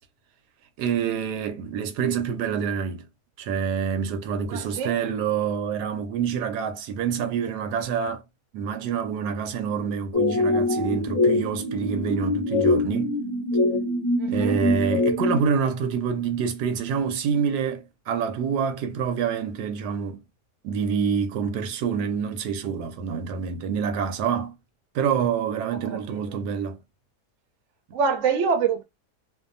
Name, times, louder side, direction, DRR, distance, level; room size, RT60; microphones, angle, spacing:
voice 1, 0.8-3.1 3.4-8.2 8.5-13.2 14.3-20.2 20.6-24.6 24.9-26.8, right 7 dB, 80° right, 1.2 m, -27 dB
voice 2, 4.5-5.0 14.2-14.7 25.8-26.4 27.9-28.8, right 6 dB, 65° right, 0.8 m, -26 dB
sound 1, 10.1-15.4, left 2 dB, 30° left, 0.7 m, -23 dB
2.7 x 2.3 x 2.5 m
omnidirectional pair, 1.8 m